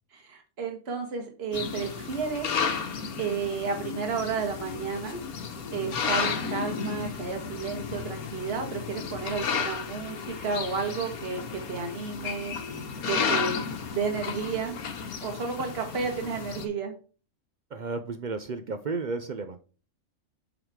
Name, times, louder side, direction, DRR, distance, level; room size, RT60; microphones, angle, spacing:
voice 1, 0.1-2.6 3.2-5.2 5.7-13.6 13.9-14.7 15.2-16.9, right 5 dB, 45° right, 3 dB, 1.5 m, -32 dB
sound 1, 1.5-16.7, left 6 dB, 85° left, 1.4 m, -33 dB
voice 2, 17.7-19.6, right 4 dB, 60° right, 8 dB, 0.4 m, -33 dB
7.9 x 4.0 x 4.6 m, 0.37 s
omnidirectional pair, 1.5 m